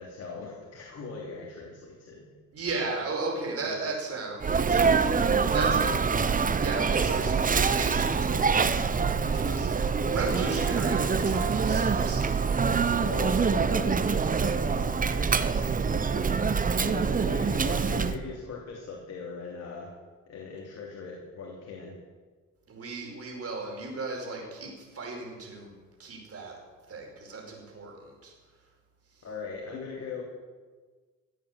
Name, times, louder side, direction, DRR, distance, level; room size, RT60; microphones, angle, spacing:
voice 1, 0.0-2.3 3.6-3.9 5.3-6.8 7.2-7.3 12.9-19.9 20.3-21.9 29.2-30.2, left 4 dB, 55° left, -2 dB, 3.0 m, -40 dB
voice 2, 2.5-4.8 5.5-6.1 6.6-12.2 22.7-26.5 26.9-28.3 29.1-29.3, right 3 dB, 50° right, 0 dB, 5.2 m, -36 dB
Sneeze, 4.4-18.2, right 5 dB, 30° right, 0.9 m, -25 dB
16.0 x 8.5 x 8.2 m, 1.4 s
cardioid pair, 90°, 30 cm